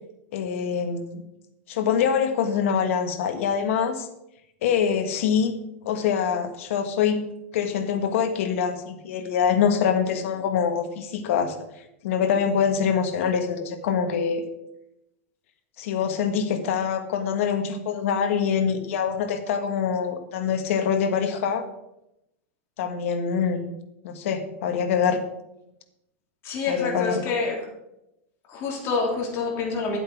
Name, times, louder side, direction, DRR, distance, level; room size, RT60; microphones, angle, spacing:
voice 1, 0.3-1.2 1.7-4.1 4.6-5.6 5.8-7.2 7.5-11.5 12.0-14.4 15.8-21.6 22.8-23.7 24.0-25.2 26.7-27.2, left 7 dB, 70° left, 7 dB, 1.5 m, -24 dB
voice 2, 26.4-27.6 28.5-30.0, left 4 dB, 35° left, 0 dB, 3.1 m, -27 dB
11.5 x 7.9 x 4.8 m, 0.86 s
supercardioid pair, 145°, 7 cm